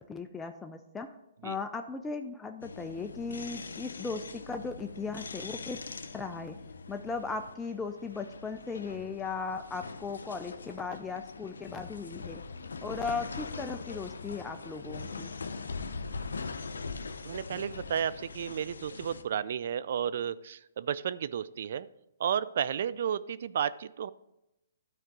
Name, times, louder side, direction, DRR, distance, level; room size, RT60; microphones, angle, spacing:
voice 1, 0.1-1.2 1.4-5.8 6.1-6.6 6.9-12.4 12.8-15.3, left 4 dB, 10° left, 5 dB, 0.4 m, -37 dB
sound 1, 2.6-19.2, left 4 dB, 85° left, 0.6 m, -42 dB
voice 2, 17.2-21.9 22.2-24.1, right 8 dB, 60° right, 16 dB, 0.4 m, -32 dB
12.0 x 4.5 x 3.8 m, 0.90 s
hypercardioid pair, 145°, 0 cm